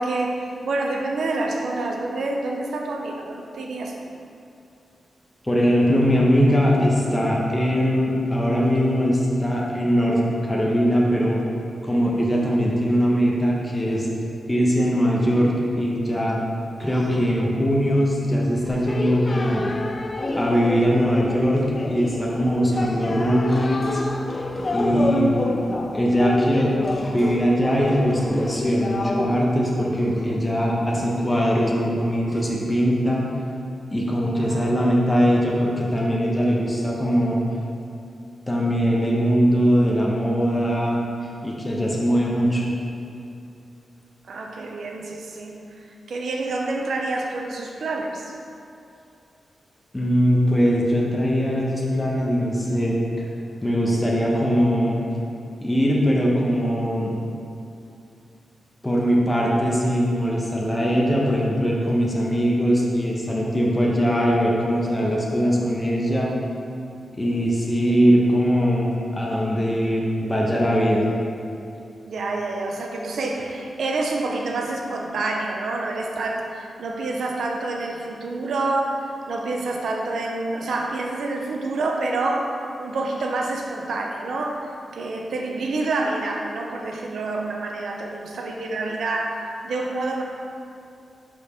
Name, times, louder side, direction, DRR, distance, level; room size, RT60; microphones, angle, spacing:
voice 1, 0.0-4.0 34.4-34.7 44.2-45.6 46.1-48.4 72.1-82.5 82.8-84.6 84.9-90.2, right 2 dB, 80° right, 1 dB, 0.7 m, -27 dB
voice 2, 5.4-11.4 11.8-14.1 14.5-16.4 16.8-19.7 20.3-24.0 24.7-25.3 25.9-26.7 27.1-33.2 33.9-37.4 38.5-41.0 41.4-42.7 49.9-53.0 53.6-55.0 55.6-57.1 58.8-66.3 67.1-71.0, equal, 15° left, -4 dB, 1.1 m, -21 dB
Human voice, 16.8-17.4 18.6-19.0 20.3-21.0 22.7-23.4 24.5-25.7 27.7-28.0 30.0-30.3 32.2-32.8 34.4-34.9, right 1 dB, 30° right, 1.1 m, -40 dB
sound 1, 18.9-29.6, left 2 dB, 40° left, 0.5 m, -28 dB
5.3 x 4.6 x 5.1 m, 2.6 s
cardioid pair, 60°, 0 cm